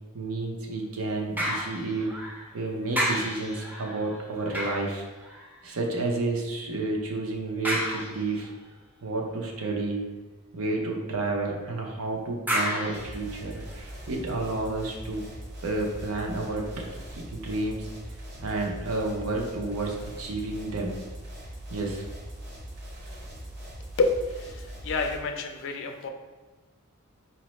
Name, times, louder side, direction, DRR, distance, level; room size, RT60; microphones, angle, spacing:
voice 1, 0.1-2.2 2.5-5.1 5.6-8.5 9.0-10.0 10.5-15.3 15.6-17.9 18.4-21.0 21.7-22.0, right 2 dB, 90° right, 0 dB, 0.6 m, -31 dB
sound 1, 1.4-2.6 2.9-5.8 7.6-8.6 12.5-13.9 14.5-14.6, equal, 10° right, 0.5 m, -32 dB
sound 2, 12.9-25.2, equal, 50° right, 0.7 m, -41 dB
voice 2, 24.0-26.1, left 3 dB, 60° left, 5 dB, 0.4 m, -28 dB
4.2 x 2.0 x 3.0 m, 1.2 s
head